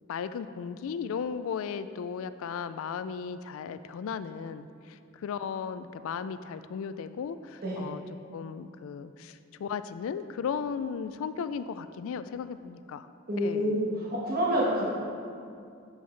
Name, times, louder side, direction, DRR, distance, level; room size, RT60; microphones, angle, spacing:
voice 1, 0.1-8.0 8.3-13.1 13.4-13.8, left 6 dB, 70° left, 13 dB, 0.3 m, -36 dB
voice 2, 13.3-14.8, equal, 45° right, -5 dB, 1.3 m, -27 dB
10.5 x 5.5 x 3.2 m, 2.4 s
head